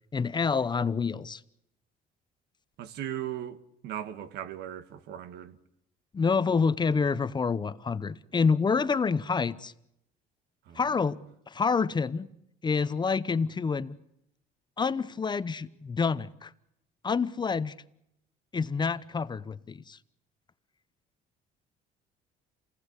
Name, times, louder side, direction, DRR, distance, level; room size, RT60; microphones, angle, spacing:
voice 1, 0.1-1.4 6.1-9.7 10.8-11.2 11.5-12.3 12.6-14.0 14.8-16.5 17.0-17.7 18.5-20.0, left 5 dB, 25° left, 0.9 m, -27 dB
voice 2, 2.8-3.6 3.8-5.6 10.7-10.8, right 11 dB, 80° right, 1.5 m, -37 dB
28.0 x 19.0 x 8.2 m
cardioid pair, 110°, 17 cm